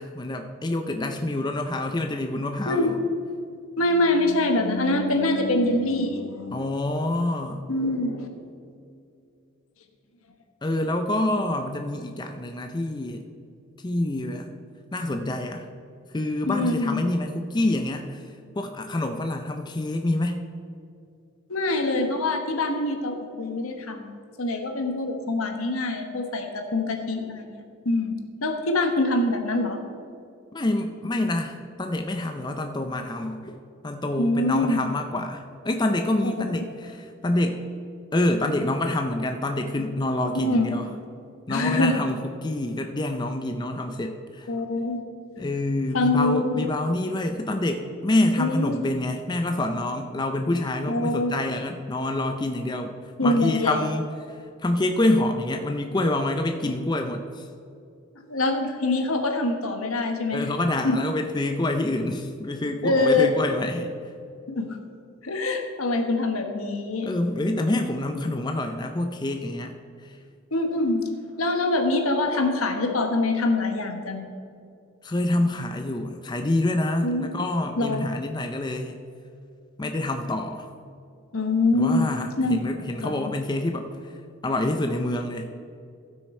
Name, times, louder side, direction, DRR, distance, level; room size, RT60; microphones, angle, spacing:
voice 1, 0.0-3.0 6.5-7.7 10.6-13.2 13.8-14.5 14.9-15.7 16.1-18.2 18.6-20.5 30.5-37.7 38.1-40.9 41.5-44.5 45.4-52.9 53.2-54.1 54.6-57.5 60.3-63.9 67.0-69.7 70.0-70.2 75.0-79.0 79.8-80.7 81.7-83.9 84.4-85.5, left 1 dB, 20° left, 5 dB, 0.4 m, -27 dB
voice 2, 3.8-6.6 7.7-8.3 16.4-17.0 21.5-24.1 24.4-28.1 28.4-29.8 34.2-34.8 36.2-36.5 40.3-40.8 41.5-41.9 44.5-45.0 45.9-46.7 48.4-48.9 50.9-51.3 53.2-53.9 58.3-60.5 60.8-61.0 62.8-63.3 64.5-64.8 65.2-67.1 70.5-71.0 71.4-74.2 77.0-77.3 77.8-78.0 81.3-82.1 82.4-82.6 83.0-83.2, left 2 dB, 80° left, 4 dB, 1.2 m, -24 dB
15.0 x 6.3 x 4.3 m, 2.5 s
head